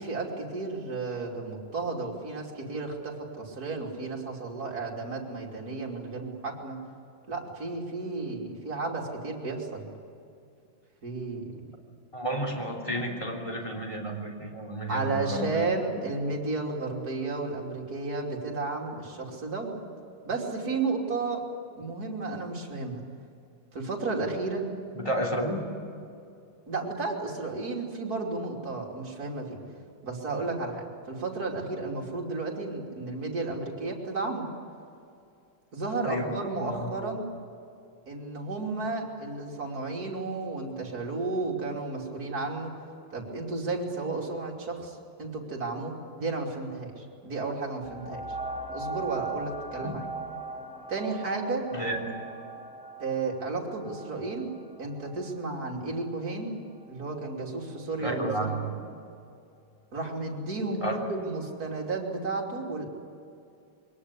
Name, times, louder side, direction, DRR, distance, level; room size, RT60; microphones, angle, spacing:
voice 1, 0.0-6.8 7.3-9.9 11.0-11.6 14.9-19.8 20.2-21.4 21.7-23.0 23.7-24.6 26.7-29.6 30.0-34.5 35.7-37.3 38.1-42.7 43.1-48.2 48.7-50.1 50.9-51.7 53.0-54.5 54.8-56.5 56.9-58.6 59.9-62.9, right 3 dB, 50° right, -1 dB, 3.5 m, -33 dB
voice 2, 12.1-15.8 24.9-25.8 36.1-36.9 49.8-49.9 51.7-52.2 58.0-58.9 60.8-61.0, right 1 dB, 15° left, 0 dB, 3.4 m, -32 dB
sound 1, 47.8-57.1 57.7-57.8, right 3 dB, 5° right, 1.5 m, -40 dB
23.0 x 18.5 x 9.9 m, 2.5 s
omnidirectional pair, 2.0 m